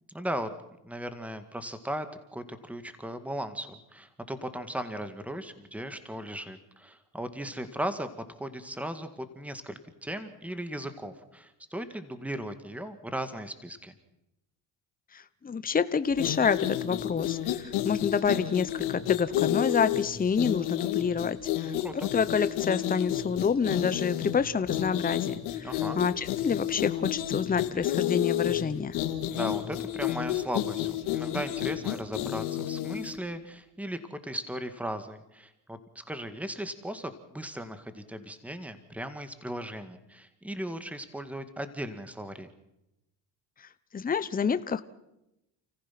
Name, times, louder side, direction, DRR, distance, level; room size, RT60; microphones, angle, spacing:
voice 1, 0.1-0.5 0.8-8.1 8.4-13.9 21.6-22.1 25.6-26.0 29.3-42.5, right 1 dB, 5° right, 10 dB, 2.0 m, -37 dB
voice 2, 15.1-25.7 25.9-29.0 43.9-44.8, left 6 dB, 20° left, 13 dB, 1.0 m, -28 dB
sound 1, 16.1-33.2, left 13 dB, 85° left, 2.2 m, -31 dB
29.5 x 15.0 x 6.0 m, 0.90 s
supercardioid pair, 85°, 39 cm